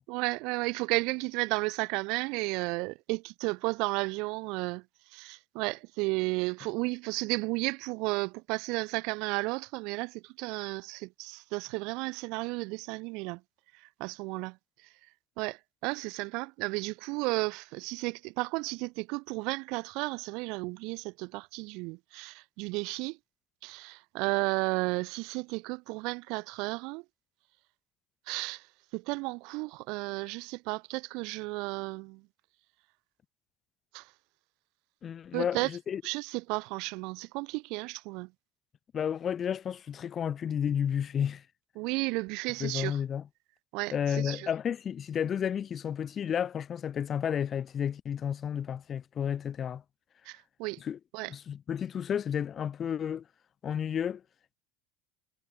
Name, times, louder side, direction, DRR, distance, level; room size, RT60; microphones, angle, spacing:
voice 1, 0.1-4.8 5.1-13.4 13.8-14.6 15.4-23.2 23.6-27.0 28.3-28.6 28.9-32.2 33.9-34.1 35.3-35.7 36.0-38.3 41.8-43.0 43.7-44.5 50.3-50.8 51.1-51.3, right 27 dB, 65° right, 0.8 m, -33 dB
voice 2, 35.0-36.0 38.9-41.4 42.6-43.2 43.9-49.8 50.8-51.0 51.3-53.2 53.6-54.2, left 8 dB, 35° left, 0.7 m, -32 dB
hypercardioid pair, 90°, 0 cm